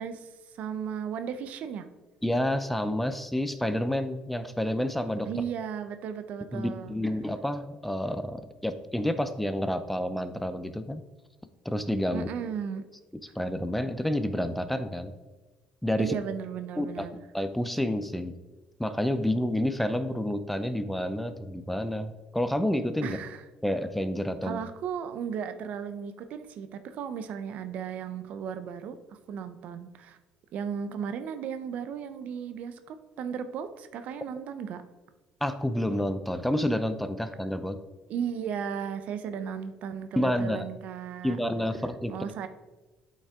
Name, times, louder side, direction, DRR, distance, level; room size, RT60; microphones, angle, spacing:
voice 1, 0.0-1.9 5.3-7.0 12.1-12.8 16.0-17.2 23.0-23.4 24.4-29.0 29.3-30.2 30.5-34.8 38.1-41.4 42.1-42.5, right 7 dB, 65° right, 10 dB, 0.6 m, -35 dB
voice 2, 2.2-5.3 6.5-11.0 11.6-12.3 13.4-15.1 15.8-16.1 16.8-17.1 17.3-18.3 18.8-23.2 23.6-24.6 35.4-37.8 40.2-40.6 41.2-42.2, left 1 dB, 5° left, 11 dB, 0.6 m, -29 dB
8.5 x 5.4 x 3.6 m, 1.2 s
supercardioid pair, 85°, 3 cm